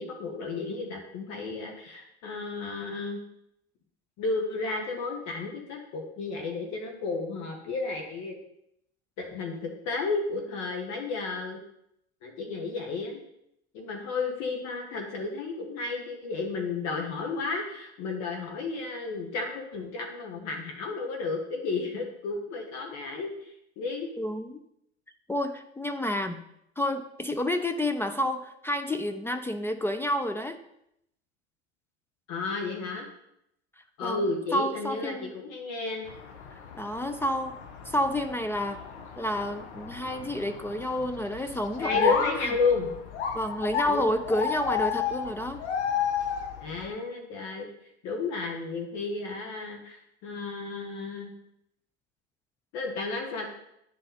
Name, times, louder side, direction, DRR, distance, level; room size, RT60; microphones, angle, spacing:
voice 1, 0.0-3.2 4.2-8.4 9.2-11.6 12.2-13.2 13.7-24.1 32.3-33.1 34.0-36.1 41.8-42.9 43.9-44.0 46.6-47.7 48.0-51.3 52.7-53.5, left 3 dB, 50° left, 2 dB, 1.5 m, -32 dB
voice 2, 24.2-24.5 25.3-26.5 26.8-30.6 34.0-34.3 34.5-35.3 36.7-37.6 37.9-38.8 39.2-42.5 43.3-45.6, left 1 dB, 5° left, 6 dB, 0.3 m, -30 dB
sound 1, 36.1-46.9, left 7 dB, 75° left, 1.1 m, -33 dB
9.9 x 4.0 x 4.1 m, 0.78 s
hypercardioid pair, 85°, 34 cm